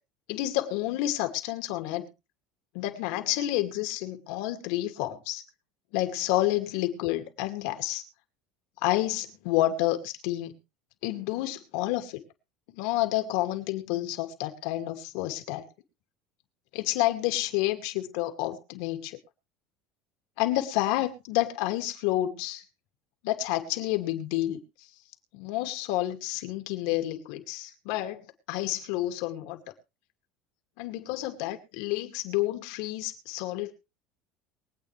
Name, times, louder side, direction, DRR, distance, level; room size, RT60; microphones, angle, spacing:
voice 1, 0.3-2.1 2.7-5.4 5.9-8.0 8.8-10.6 11.0-12.2 12.7-15.7 16.7-19.2 20.4-22.6 23.2-24.6 25.3-29.6 30.8-33.7, left 15 dB, 75° left, 2.5 m, -29 dB
23.0 x 8.8 x 3.4 m
supercardioid pair, 135°, 0 cm